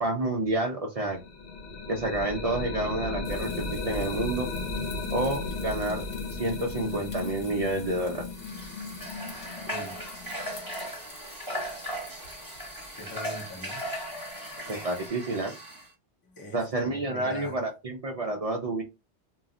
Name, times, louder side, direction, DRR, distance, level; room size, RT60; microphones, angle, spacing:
voice 1, 0.0-1.2 1.9-4.5 5.1-6.0 6.4-8.2 14.7-15.5 16.5-18.8, right 2 dB, 55° right, 0.4 m, -29 dB
sound 1, 1.1-10.9, left 3 dB, 80° left, 1.0 m, -35 dB
sound 2, 3.2-15.1, left 3 dB, 55° left, 1.1 m, -49 dB
Water / Water tap faucet, 8.4-15.9, equal, 20° right, 1.2 m, -38 dB
voice 2, 9.4-10.0 12.9-13.8 16.2-17.6, left 2 dB, 25° left, 0.6 m, -42 dB
2.3 x 2.0 x 3.6 m
omnidirectional pair, 1.1 m